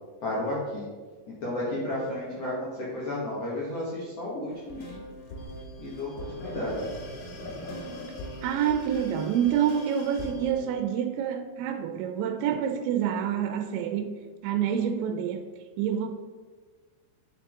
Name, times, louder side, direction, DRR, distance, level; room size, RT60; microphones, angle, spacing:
voice 1, 0.2-0.9 1.3-5.0 5.8-6.8, left 1 dB, 80° left, -6 dB, 1.4 m, -32 dB
sound 1, 4.5-10.5, equal, 60° left, 2.8 m, -40 dB
voice 2, 8.4-14.1 14.4-15.5 15.8-16.1, right 9 dB, 85° right, 6 dB, 2.9 m, -27 dB
10.0 x 5.4 x 3.6 m, 1.4 s
omnidirectional pair, 5.2 m